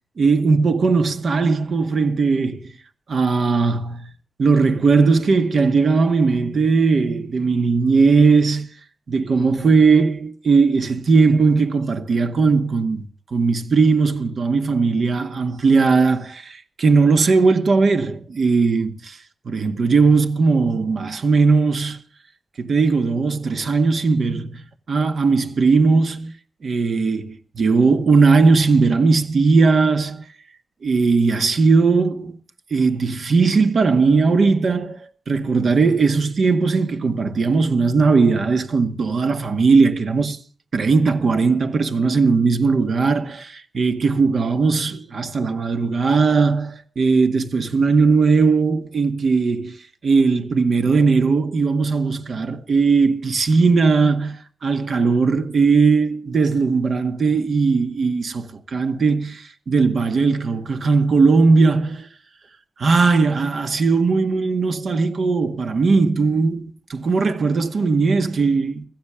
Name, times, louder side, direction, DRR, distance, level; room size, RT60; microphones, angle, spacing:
voice 1, 0.2-2.7 3.1-4.1 4.4-8.7 9.1-19.2 19.5-22.0 22.6-24.6 24.9-26.3 26.6-30.2 30.8-32.4 32.7-40.4 40.7-49.8 50.0-62.1 62.8-68.8, right 4 dB, 65° right, 1.9 m, -18 dB
16.0 x 14.0 x 5.0 m
cardioid pair, 80°, 0 cm